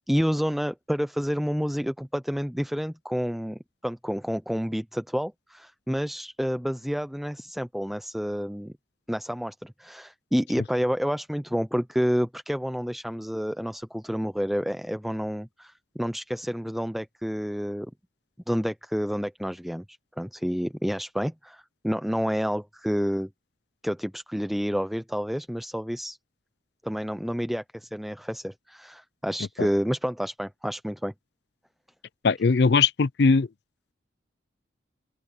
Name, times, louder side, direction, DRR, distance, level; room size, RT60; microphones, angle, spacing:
voice 1, 0.1-8.7 9.1-17.9 18.5-23.3 23.8-26.2 26.8-31.1, equal, ahead, 0.4 m, -29 dB
voice 2, 32.2-33.5, left 4 dB, 60° left, 0.5 m, -20 dB
open air
head